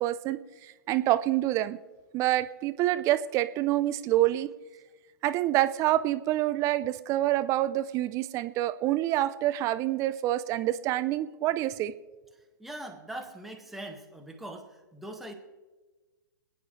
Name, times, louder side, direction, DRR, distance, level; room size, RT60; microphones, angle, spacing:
voice 1, 0.0-1.8 2.1-4.5 5.2-11.9, right 14 dB, 25° right, 14 dB, 0.5 m, -27 dB
voice 2, 12.6-15.3, right 1 dB, ahead, 2 dB, 1.7 m, -41 dB
27.0 x 9.9 x 3.2 m, 1.2 s
hypercardioid pair, 125°, 12 cm